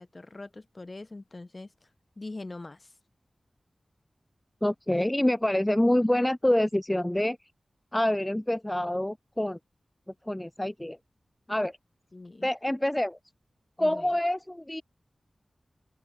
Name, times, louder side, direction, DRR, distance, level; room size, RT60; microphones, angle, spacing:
voice 1, 0.0-1.7 2.2-2.9 12.1-12.5 13.8-14.1, left 2 dB, 45° left, 3.2 m, -42 dB
voice 2, 4.6-7.4 7.9-9.6 10.3-11.0 11.5-11.7 12.4-13.2 13.8-14.8, left 1 dB, 15° left, 0.7 m, -26 dB
open air
cardioid pair, 40°, 0 cm